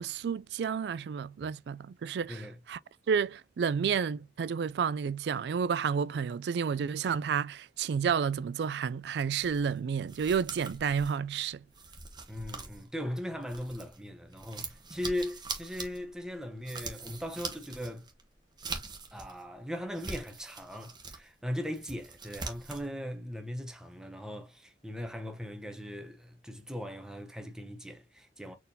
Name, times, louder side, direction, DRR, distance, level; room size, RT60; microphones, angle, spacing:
voice 1, 0.0-2.4 2.7-2.8 3.1-11.6, right 6 dB, 70° right, 0.3 m, -30 dB
voice 2, 2.3-2.6 12.3-18.1 19.1-28.5, left 1 dB, 5° right, 0.8 m, -39 dB
sound 1, 9.4-14.0 14.3-19.4 19.8-21.2 21.6-22.9, right 4 dB, 25° right, 1.0 m, -43 dB
4.4 x 3.5 x 2.7 m
head